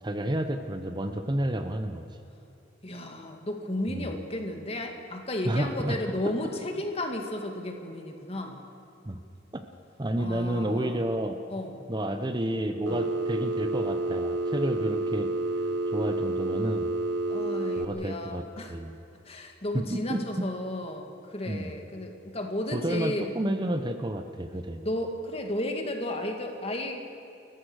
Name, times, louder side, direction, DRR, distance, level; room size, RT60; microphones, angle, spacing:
voice 1, 0.0-2.0 3.9-4.1 5.4-6.0 9.0-9.2 10.0-11.4 11.9-15.3 15.9-16.9 17.7-18.4 18.7-19.0 19.7-20.2 21.5-21.7 22.7-24.8, right 1 dB, 25° right, 7 dB, 0.9 m, -30 dB
voice 2, 2.8-8.6 10.2-11.0 11.5-11.8 12.9-13.1 17.3-18.8 19.2-23.3 24.8-27.0, left 1 dB, 35° left, 3 dB, 2.3 m, -33 dB
Telephone, 12.9-17.9, right 2 dB, 85° right, 1.2 m, -29 dB
30.0 x 14.5 x 6.4 m, 2.8 s
head